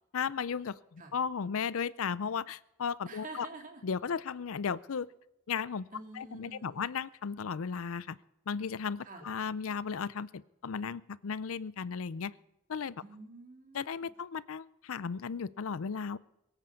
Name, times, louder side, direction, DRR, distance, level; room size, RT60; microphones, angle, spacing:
voice 1, 0.1-3.5 3.8-5.1 5.5-5.9 6.1-8.2 8.5-12.3 12.7-13.0 13.7-16.2, left 6 dB, 75° left, 20 dB, 0.5 m, -35 dB
voice 2, 3.1-3.8 5.9-6.8 9.0-9.3 13.0-13.8, right 3 dB, 35° right, 4 dB, 2.6 m, -48 dB
22.5 x 9.0 x 7.0 m, 0.92 s
head